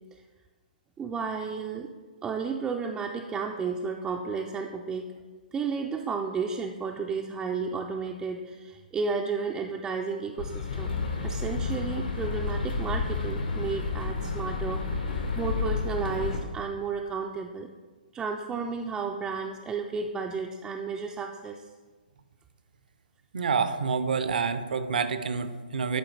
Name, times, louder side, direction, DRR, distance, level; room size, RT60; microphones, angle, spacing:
voice 1, 1.0-1.9 2.2-5.1 5.5-17.7 18.1-21.6, right 5 dB, 15° right, 1 dB, 0.4 m, -33 dB
sound 1, 10.4-16.4, left 4 dB, 75° left, 1.4 m, -30 dB
voice 2, 23.3-26.0, right 5 dB, 65° right, 11 dB, 0.6 m, -28 dB
11.0 x 4.4 x 3.2 m, 1.4 s
figure-of-eight pair, 130°, 5 cm